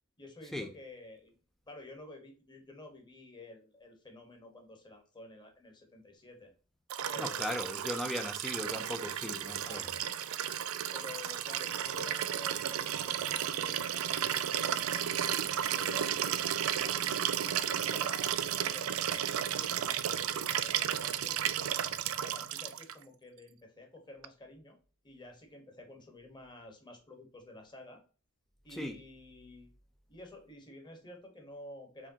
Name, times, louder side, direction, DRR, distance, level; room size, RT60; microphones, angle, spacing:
voice 1, 0.2-1.3 1.7-6.5 7.0-8.3 9.6-9.9 10.9-17.1 17.4-21.7 22.2-24.8 25.0-28.0 28.6-29.7 30.1-32.1, left 2 dB, 20° left, 4 dB, 1.2 m, -51 dB
Liquid, 6.9-22.9 24.2-24.3, right 9 dB, 85° right, 0.4 m, -33 dB
voice 2, 7.2-9.9 28.7-29.0, left 1 dB, ahead, 7 dB, 0.5 m, -38 dB
4.9 x 3.5 x 2.8 m, 0.37 s
head